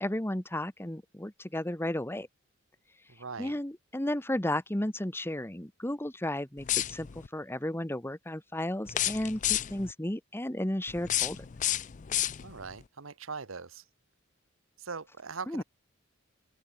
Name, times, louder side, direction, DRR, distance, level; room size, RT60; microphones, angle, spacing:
voice 1, 0.0-2.3 3.4-7.1 7.3-11.5 15.5-15.6, left 1 dB, 10° left, 1.3 m, -33 dB
voice 2, 3.1-3.6 12.4-13.8 14.8-15.6, right 5 dB, 70° right, 1.2 m, -41 dB
sound 1, 6.6-7.3 8.9-9.9 10.9-12.7, left 12 dB, 35° left, 0.5 m, -31 dB
open air
head